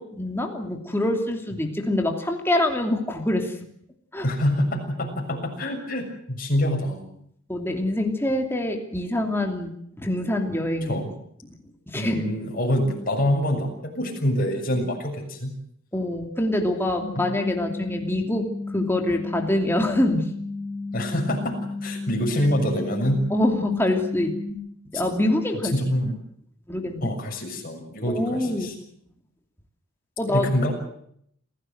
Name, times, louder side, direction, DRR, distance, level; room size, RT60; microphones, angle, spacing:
voice 1, 0.0-3.5 4.1-4.3 7.5-11.0 11.9-12.3 15.9-18.5 18.7-20.3 23.3-24.4 24.9-25.8 26.0-26.1 26.7-27.1 28.1-28.7 30.2-30.5, left 1 dB, 10° left, 3 dB, 2.9 m, -25 dB
voice 2, 4.2-7.1 10.8-11.1 11.9-15.5 17.2-17.3 20.9-23.2 25.7-26.2 27.0-28.7 30.3-30.7, equal, 45° left, 1 dB, 6.9 m, -26 dB
sound 1, 17.0-24.5, left 3 dB, 85° left, 4.9 m, -33 dB
27.5 x 16.0 x 7.9 m, 0.69 s
head